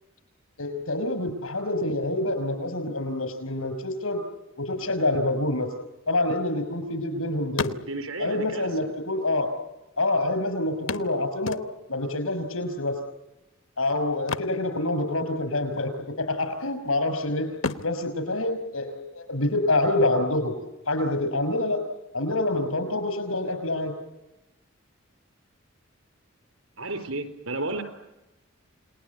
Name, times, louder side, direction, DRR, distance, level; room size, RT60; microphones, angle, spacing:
voice 1, 0.6-4.2 4.6-5.7 6.1-7.7 8.2-9.6 10.0-11.6 11.9-13.0 13.8-17.5 17.8-20.5 20.9-21.8 22.1-23.9, left 2 dB, 85° left, 9 dB, 5.5 m, -26 dB
sound 1, 5.9-7.1 7.4-8.3 9.2-9.3 9.5-9.6 10.9-12.1 14.1-15.4 15.7-16.0 16.5-17.1 17.5-19.3 21.3-21.4 21.8-21.9, left 4 dB, 70° left, 1.0 m, -35 dB
voice 2, 7.9-8.9 26.8-27.8, right 2 dB, 85° right, 9 dB, 4.4 m, -32 dB
29.5 x 19.5 x 9.5 m, 0.99 s
head